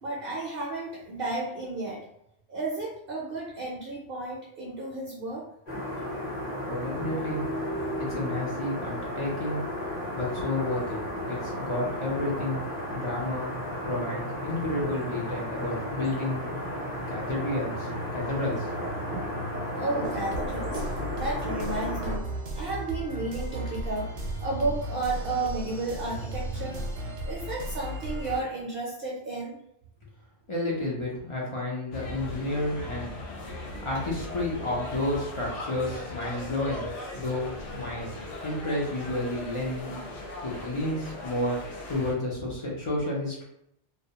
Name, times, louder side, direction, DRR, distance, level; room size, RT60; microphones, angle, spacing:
voice 1, 0.0-2.0 2.5-5.5 19.7-20.8 21.2-22.2 22.5-24.1 24.4-26.9 27.2-29.6, right 2 dB, 60° right, -3 dB, 0.6 m, -32 dB
sound 1, 5.7-22.2, equal, 30° left, 0.7 m, -33 dB
voice 2, 6.7-7.5 8.0-9.6 10.1-11.0 11.3-12.6 12.9-13.5 13.8-16.4 17.1-18.7 30.5-33.1 33.8-36.9 37.1-40.0 40.4-41.6 41.9-43.4, left 1 dB, 50° left, -4 dB, 0.3 m, -31 dB
sound 2, 20.0-28.4, equal, 80° right, 0.9 m, -35 dB
sound 3, 31.9-42.1, left 2 dB, 75° left, 0.9 m, -38 dB
2.3 x 2.1 x 2.7 m, 0.77 s
omnidirectional pair, 1.3 m